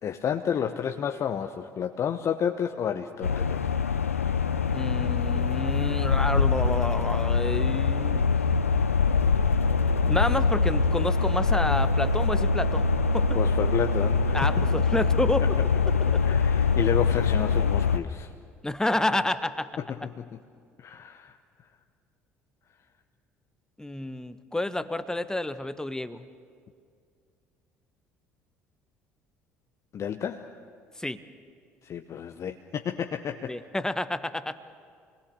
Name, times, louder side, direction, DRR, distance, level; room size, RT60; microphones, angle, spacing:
voice 1, 0.0-3.6 4.1-4.2 13.3-14.6 16.0-18.3 20.2-20.3 20.8-21.3 29.9-30.5 31.8-33.5, left 8 dB, 40° left, 6 dB, 1.0 m, -31 dB
sound 1, 3.2-18.0, left 4 dB, 85° left, 0.6 m, -24 dB
voice 2, 4.7-8.2 10.1-12.9 13.1-13.4 14.3-15.5 18.6-19.7 23.8-26.2 31.0-31.2 33.5-34.5, left 1 dB, 10° left, 12 dB, 1.2 m, -29 dB
28.0 x 21.0 x 6.9 m, 2.2 s
figure-of-eight pair, 55°, 7 cm